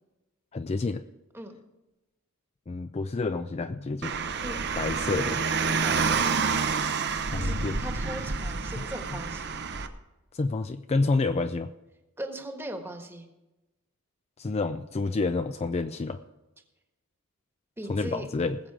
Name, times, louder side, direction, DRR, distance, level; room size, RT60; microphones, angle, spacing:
voice 1, 0.5-1.0 2.7-4.1 4.8-5.4 7.2-7.8 8.7-8.8 10.3-11.7 14.4-16.2 17.9-18.6, left 3 dB, 30° left, 9 dB, 0.4 m, -29 dB
Car, 4.0-9.9, right 5 dB, 50° right, 0.9 m, -28 dB
voice 2, 5.8-6.5 7.3-9.7 12.2-13.3 17.8-18.3, right 1 dB, 10° right, 4 dB, 1.4 m, -39 dB
19.5 x 7.6 x 4.8 m, 1.0 s
head